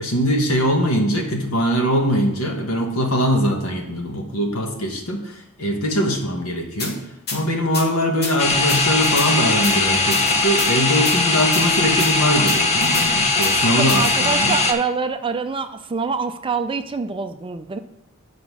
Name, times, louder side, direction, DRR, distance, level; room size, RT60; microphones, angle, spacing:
voice 1, 0.0-7.0 7.3-14.7, equal, 70° left, 2 dB, 1.5 m, -22 dB
sound 1, 6.8-6.9 7.3-7.4 7.7-7.9 8.2-8.3 8.7-9.3 9.6-9.7 10.1-10.7 11.1-11.2 11.5-11.6 12.0-12.1 12.5-13.1 13.4-13.5 13.9-14.1, left 3 dB, 50° left, 1.6 m, -27 dB
sound 2, 8.4-14.7, left 3 dB, 30° left, 0.8 m, -19 dB
voice 2, 13.8-17.8, right 5 dB, 25° right, 9 dB, 0.4 m, -25 dB
9.1 x 5.0 x 4.8 m, 0.82 s
head